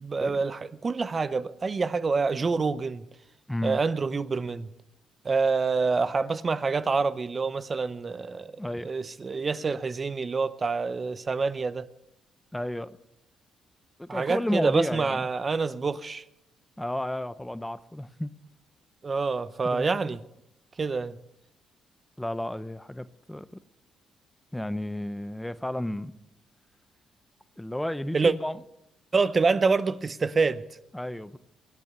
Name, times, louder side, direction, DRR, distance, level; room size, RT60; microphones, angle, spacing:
voice 1, 0.0-3.0 3.6-4.7 5.2-8.5 8.8-11.9 14.1-16.2 19.0-20.2 20.8-21.2 28.1-28.3 29.1-30.6, right 4 dB, 35° right, 0.7 m, -26 dB
voice 2, 3.5-3.8 8.6-8.9 12.5-13.0 14.0-15.3 16.8-18.3 19.6-20.2 22.2-23.5 24.5-26.1 27.6-28.6 30.9-31.4, left 1 dB, 5° left, 0.6 m, -32 dB
23.5 x 9.1 x 6.8 m
cardioid pair, 90°, 0 cm